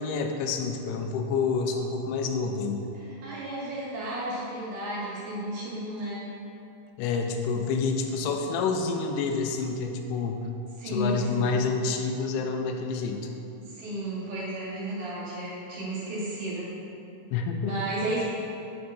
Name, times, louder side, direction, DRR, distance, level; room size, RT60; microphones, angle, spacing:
voice 1, 0.0-2.9 7.0-10.4 10.8-13.3 17.3-17.8, left 4 dB, 90° left, 3 dB, 3.0 m, -28 dB
voice 2, 2.9-6.3 10.8-11.6 13.6-16.7 17.6-18.2, right 1 dB, 60° right, -8 dB, 2.9 m, -33 dB
9.1 x 6.2 x 2.7 m, 2.8 s
omnidirectional pair, 5.2 m